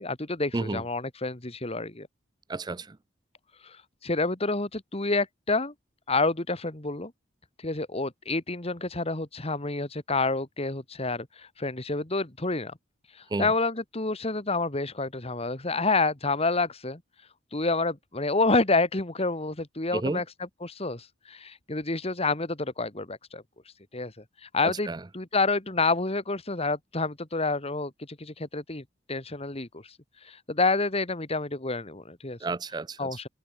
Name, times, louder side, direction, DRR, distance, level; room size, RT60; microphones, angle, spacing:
voice 1, 0.0-2.1 3.6-3.8 4.0-5.7 6.1-7.1 7.6-11.3 11.6-12.7 13.4-17.0 17.5-23.4 23.9-24.1 24.4-27.9 28.2-29.8 30.3-32.4 33.0-33.3, left 3 dB, 35° left, 2.2 m, -28 dB
voice 2, 2.5-3.0 13.3-13.5 19.9-20.2 24.9-25.0 32.4-33.2, right 2 dB, 20° right, 0.5 m, -31 dB
open air
head